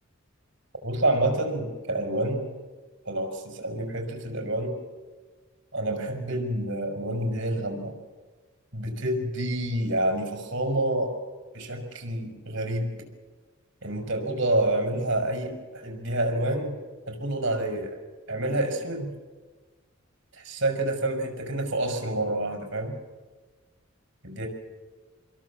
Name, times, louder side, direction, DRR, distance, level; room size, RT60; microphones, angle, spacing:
voice 1, 0.8-2.5 3.1-4.8 5.7-7.9 8.7-11.2 11.5-12.9 13.8-16.8 17.1-18.0 18.3-19.1 20.3-22.9 24.2-24.5, right 1 dB, 65° right, 4 dB, 5.6 m, -28 dB
26.5 x 22.0 x 7.4 m, 1.3 s
head